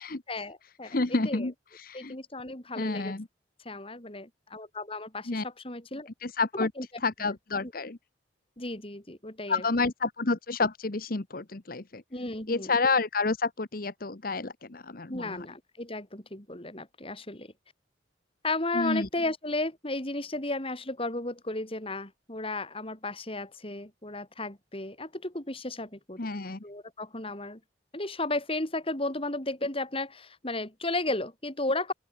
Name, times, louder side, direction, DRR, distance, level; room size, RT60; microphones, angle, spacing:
voice 1, 0.3-1.5 1.9-3.2 3.6-6.1 6.5-6.9 7.2-7.3 7.6-7.7 8.6-9.9 12.1-12.7 15.1-17.5 18.4-26.3 26.6-27.6 27.9-31.9, left 2 dB, 30° left, 4.4 m, -34 dB
voice 2, 0.8-2.2 2.8-3.3 5.3-5.4 6.2-6.7 7.0-8.0 9.5-12.0 12.5-15.5 18.7-19.1 26.2-26.6, left 3 dB, 55° left, 1.2 m, -29 dB
open air
head